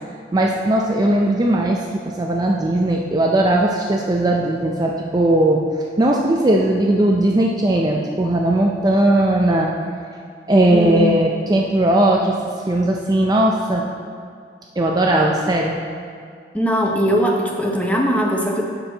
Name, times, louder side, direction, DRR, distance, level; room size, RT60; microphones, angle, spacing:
voice 1, 0.3-9.7 10.5-12.3 12.7-13.9 14.8-15.8, right 1 dB, 20° right, -1 dB, 0.4 m, -18 dB
voice 2, 10.7-11.1 16.5-18.6, equal, 10° left, 0 dB, 0.7 m, -20 dB
11.5 x 4.4 x 3.9 m, 2.3 s
head